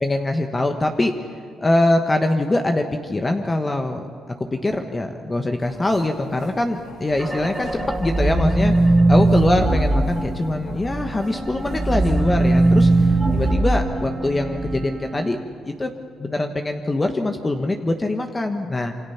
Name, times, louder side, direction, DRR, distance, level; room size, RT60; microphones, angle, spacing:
voice 1, 0.0-1.1 1.6-8.7 9.1-15.4 15.6-15.9 16.2-18.9, left 2 dB, 20° left, 5 dB, 1.3 m, -23 dB
sound 1, 5.6-13.5, left 3 dB, 75° left, 3.2 m, -41 dB
sound 2, 7.2-11.1 11.5-14.8, right 2 dB, 10° right, 1.3 m, -20 dB
Wind instrument woodwind instrument, 11.0-15.5, right 3 dB, 45° right, 3.0 m, -35 dB
27.0 x 24.5 x 5.9 m, 2.3 s
cardioid pair, 90°, 0 cm